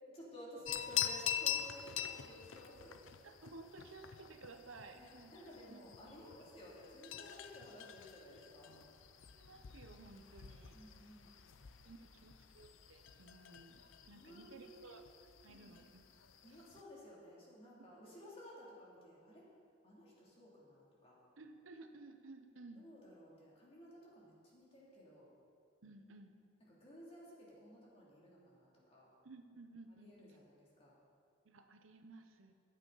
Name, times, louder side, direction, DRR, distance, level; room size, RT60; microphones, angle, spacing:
voice 1, 0.1-3.0 4.9-8.7 10.7-11.4 14.1-14.9 15.5-15.8 16.4-19.4 19.8-21.2 22.8-25.3 26.7-29.1 30.0-31.0, equal, 30° left, -6 dB, 2.8 m, -55 dB
sound 1, 0.7-16.8, left 10 dB, 80° left, 0.6 m, -45 dB
voice 2, 3.2-5.3 5.7-5.8 9.3-10.8 11.8-15.0 15.4-16.0 16.5-16.7 21.4-22.9 25.8-26.4 29.2-30.4 31.4-32.5, right 3 dB, 90° right, 7 dB, 0.8 m, -56 dB
14.0 x 9.8 x 4.0 m, 2.3 s
head